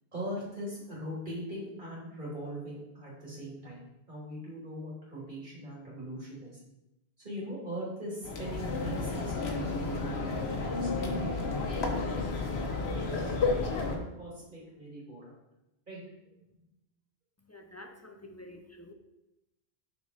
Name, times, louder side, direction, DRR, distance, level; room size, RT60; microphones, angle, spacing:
voice 1, 0.1-6.6 7.2-12.2 12.9-15.4 15.9-16.0, equal, 50° right, -6 dB, 2.9 m, -41 dB
sound 1, 8.2-14.0, left 3 dB, 80° left, 1.2 m, -32 dB
voice 2, 17.4-18.9, left 1 dB, 25° left, 4 dB, 0.4 m, -49 dB
6.4 x 5.0 x 4.0 m, 0.90 s
omnidirectional pair, 1.1 m